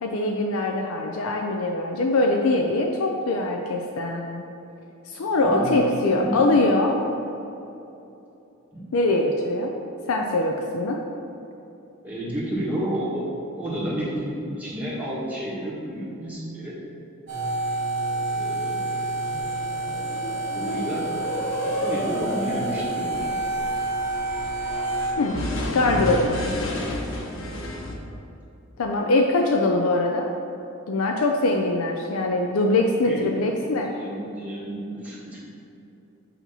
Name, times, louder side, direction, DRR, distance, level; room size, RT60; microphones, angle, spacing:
voice 1, 0.0-4.4 5.1-6.9 8.9-9.7 10.1-11.0 25.2-25.4 25.7-26.4 28.8-30.3 30.9-33.9, left 2 dB, 85° left, 1 dB, 0.5 m, -22 dB
voice 2, 5.1-6.4 8.7-8.9 12.0-13.2 13.6-16.8 18.3-18.9 20.5-21.1 21.5-23.1 33.0-33.2 33.8-35.4, right 1 dB, 5° right, -8 dB, 1.4 m, -31 dB
sound 1, 17.3-25.1, right 2 dB, 85° right, 1.5 m, -28 dB
sound 2, 19.2-27.9, left 1 dB, 65° left, 0.8 m, -32 dB
8.3 x 2.9 x 5.5 m, 2.9 s
head